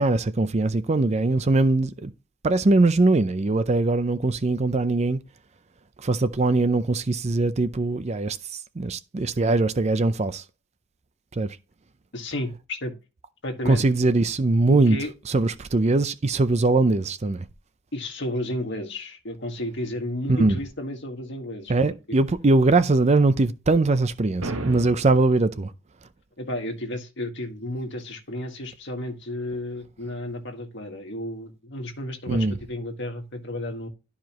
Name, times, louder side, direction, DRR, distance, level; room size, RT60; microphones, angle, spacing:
voice 1, 0.0-2.1 2.4-5.2 6.0-10.4 11.4-11.6 13.7-15.0 15.3-17.4 20.3-20.6 21.7-25.7 32.3-32.6, right 2 dB, 30° right, 0.5 m, -21 dB
voice 2, 12.1-12.9 13.4-13.8 14.7-15.1 17.9-22.2 26.4-33.9, left 1 dB, 60° left, 1.7 m, -32 dB
sound 1, 24.4-25.4, right 2 dB, 85° right, 1.3 m, -33 dB
12.0 x 4.8 x 3.0 m
head